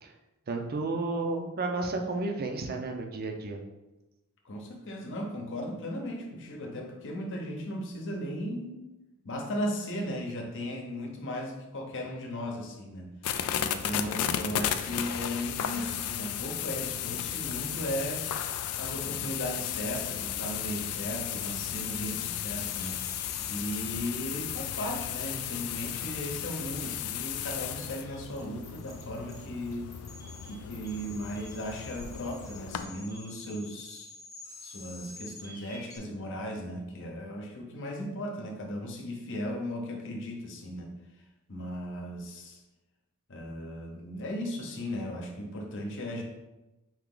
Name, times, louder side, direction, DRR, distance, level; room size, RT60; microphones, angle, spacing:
voice 1, 0.5-3.6, right 3 dB, 45° right, 3 dB, 0.5 m, -32 dB
voice 2, 4.4-8.8 9.2-13.1 13.6-18.3 18.8-23.1 23.5-29.9 30.4-34.1 34.6-40.9 41.5-42.6 43.3-46.2, equal, 55° left, 1 dB, 0.8 m, -36 dB
sound 1, 13.2-32.8, left 10 dB, 80° left, 0.4 m, -34 dB
sound 2, 21.5-36.0, left 2 dB, 15° left, 0.9 m, -50 dB
4.7 x 2.9 x 3.8 m, 1.0 s
head